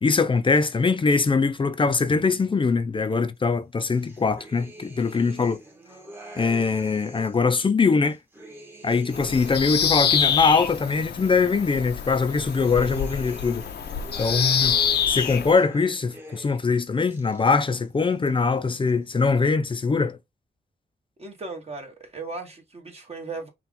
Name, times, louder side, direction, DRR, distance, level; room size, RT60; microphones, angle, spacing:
voice 1, 0.0-5.6 6.4-8.2 8.8-13.7 14.2-14.8 15.1-20.2, left 4 dB, 30° left, 0.5 m, -22 dB
sound 1, 3.9-7.5 8.0-11.4 11.9-16.7 17.0-17.8 18.1-18.9, equal, 15° right, 1.1 m, -45 dB
Bird vocalization bird call bird song, 9.1-15.5, left 8 dB, 80° left, 0.7 m, -26 dB
voice 2, 21.2-23.5, right 3 dB, 40° right, 1.5 m, -37 dB
5.6 x 2.4 x 3.6 m
wide cardioid pair, 120°, 17 cm